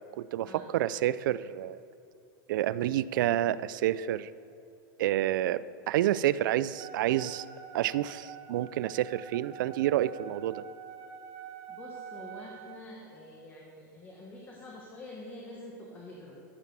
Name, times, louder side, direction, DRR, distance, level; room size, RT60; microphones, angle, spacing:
voice 1, 0.0-1.8 2.5-4.3 5.0-7.5 7.7-10.6, right 13 dB, 70° right, 17 dB, 0.4 m, -29 dB
Wind instrument woodwind instrument, 6.8-12.9, right 8 dB, 35° right, 0.9 m, -46 dB
voice 2, 11.7-16.4, left 1 dB, 20° left, -2 dB, 1.4 m, -46 dB
14.0 x 7.3 x 5.4 m, 2.7 s
supercardioid pair, 150°, 11 cm